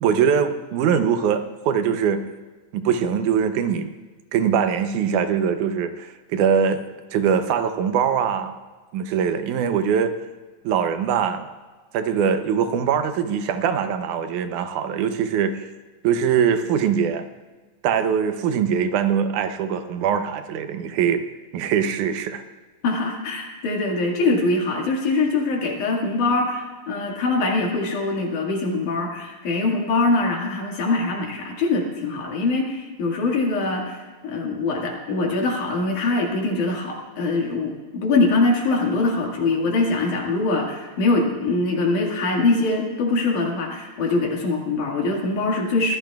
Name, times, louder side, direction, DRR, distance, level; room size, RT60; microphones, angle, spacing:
voice 1, 0.0-2.2 2.7-3.9 4.3-6.8 7.1-8.5 8.9-10.1 10.6-11.5 11.9-15.7 16.0-17.3 17.8-21.2 21.5-22.4, right 7 dB, 80° right, 9 dB, 2.2 m, -22 dB
voice 2, 22.8-46.0, left 3 dB, 80° left, 0 dB, 3.5 m, -23 dB
23.5 x 15.0 x 2.4 m, 1.4 s
omnidirectional pair, 3.5 m